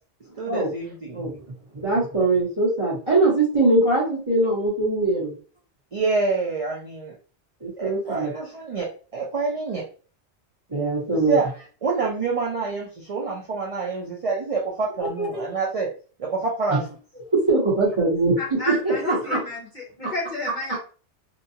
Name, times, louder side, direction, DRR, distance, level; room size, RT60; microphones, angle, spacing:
voice 1, 0.4-1.2 5.9-7.1 7.8-9.8 11.1-15.9 16.2-16.8, right 4 dB, 40° right, 0.5 m, -27 dB
voice 2, 1.7-5.3 7.6-8.3 10.7-11.4 15.2-15.4 16.7-16.8 17.3-19.4 20.0-20.1, right 2 dB, 25° right, 1.2 m, -22 dB
voice 3, 18.4-20.8, left 2 dB, 45° left, 0.8 m, -31 dB
2.7 x 2.3 x 2.8 m
omnidirectional pair, 1.2 m